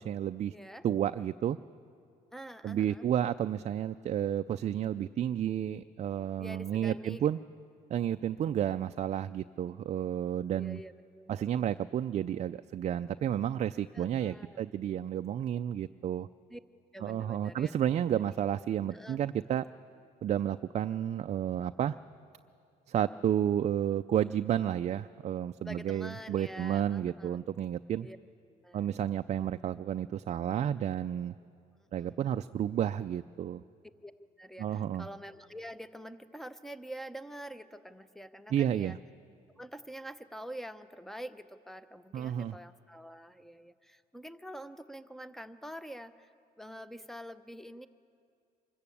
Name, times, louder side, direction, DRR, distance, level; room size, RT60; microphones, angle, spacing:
voice 1, 0.0-0.5 0.8-1.6 2.6-7.4 7.9-10.8 11.3-16.3 17.0-19.6 20.2-22.0 22.9-28.1 28.7-31.3 31.9-33.6 34.6-35.1 38.5-39.0 42.1-42.5, right 10 dB, 40° right, 9 dB, 0.4 m, -31 dB
voice 2, 0.5-0.9 2.3-3.1 6.4-7.3 10.5-11.5 13.9-14.7 16.5-16.6 16.9-17.7 18.3-18.4 18.9-19.2 25.6-27.4 28.0-28.2 28.6-28.9 31.8-32.2 34.0-34.1 34.4-39.0 39.6-46.3 46.6-47.9, equal, ahead, 12 dB, 0.8 m, -46 dB
24.0 x 14.0 x 8.5 m, 2.4 s
cardioid pair, 110°, 17 cm